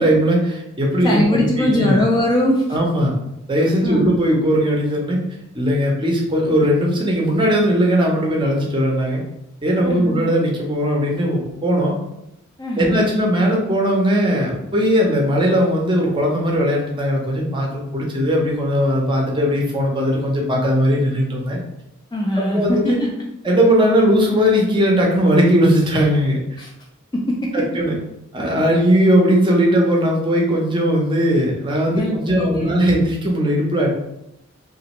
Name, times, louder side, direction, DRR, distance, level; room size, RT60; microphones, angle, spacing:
voice 1, 0.0-2.0 2.7-3.1 3.5-5.2 5.5-9.2 9.6-11.9 12.8-21.6 22.5-23.0 23.4-26.4 27.5-28.0 28.3-33.9, equal, 20° right, -1 dB, 0.6 m, -18 dB
voice 2, 1.0-2.6 3.8-4.1 9.8-10.2 12.6-13.0 22.1-23.1 26.6-26.7 27.1-27.7 31.9-32.8, left 1 dB, 20° left, -1 dB, 0.3 m, -21 dB
3.0 x 2.5 x 2.9 m, 0.84 s
head